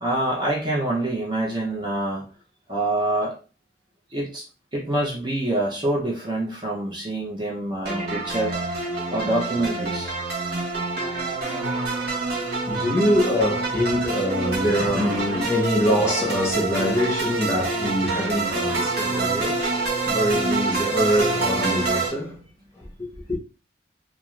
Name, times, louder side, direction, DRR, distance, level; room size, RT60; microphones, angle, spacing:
voice 1, 0.0-2.2 2.7-3.3 4.1-4.5 4.7-8.6 8.8-10.1 20.7-20.8 21.1-21.3, right 1 dB, 25° right, 0.6 m, -26 dB
sound 1, 7.8-22.1, right 3 dB, 55° right, 1.1 m, -26 dB
voice 2, 12.7-22.4 23.0-23.4, left 1 dB, 15° left, 0.8 m, -24 dB
2.4 x 2.4 x 3.0 m
head